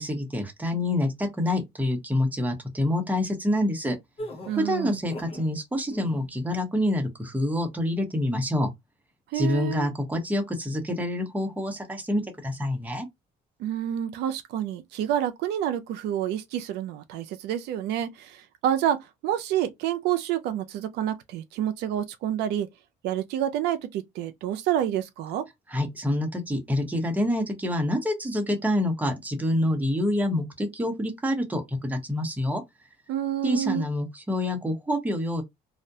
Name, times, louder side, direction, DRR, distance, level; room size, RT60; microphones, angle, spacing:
voice 1, 0.0-4.0 4.6-8.7 9.3-13.1 25.7-32.6 33.4-35.4, left 1 dB, 10° right, 0.8 m, -27 dB
sound 1, 4.2-5.5 5.9-6.3, equal, 35° left, 0.6 m, -39 dB
voice 2, 4.5-5.0 9.3-9.9 13.6-19.0 19.2-22.7 23.0-25.4 33.1-33.9, right 11 dB, 80° right, 0.4 m, -28 dB
2.3 x 2.1 x 2.6 m
cardioid pair, 110°, 17 cm